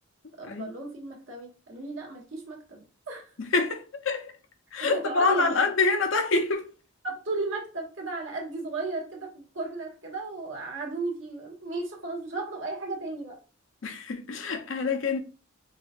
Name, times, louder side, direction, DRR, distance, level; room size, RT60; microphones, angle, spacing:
voice 1, 0.4-3.3 4.8-5.6 7.0-13.4, right 3 dB, 65° right, 1.4 m, -35 dB
voice 2, 3.4-4.3 4.7-6.7 13.8-15.2, left 3 dB, 75° left, 0.7 m, -26 dB
4.8 x 2.7 x 2.5 m
head